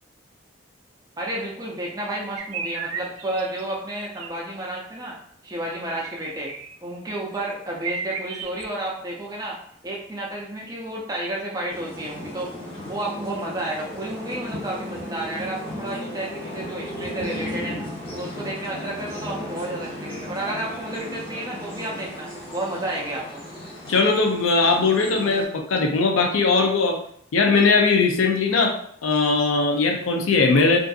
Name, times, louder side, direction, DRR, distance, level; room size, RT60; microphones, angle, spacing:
voice 1, 1.2-5.2 5.4-6.5 6.8-9.6 9.8-12.5 12.8-17.8 18.1-23.4, right 1 dB, 20° right, -3 dB, 0.5 m, -31 dB
sound 1, 2.4-3.7 4.2-4.4 6.0-6.8 7.4-7.5 7.7-8.6, right 6 dB, 80° right, 0.3 m, -34 dB
sound 2, 11.7-25.4, equal, 30° left, 0.9 m, -35 dB
voice 2, 23.9-27.0 27.3-28.8 29.0-30.8, left 4 dB, 90° left, 3 dB, 0.5 m, -19 dB
2.6 x 2.5 x 2.3 m, 0.65 s
head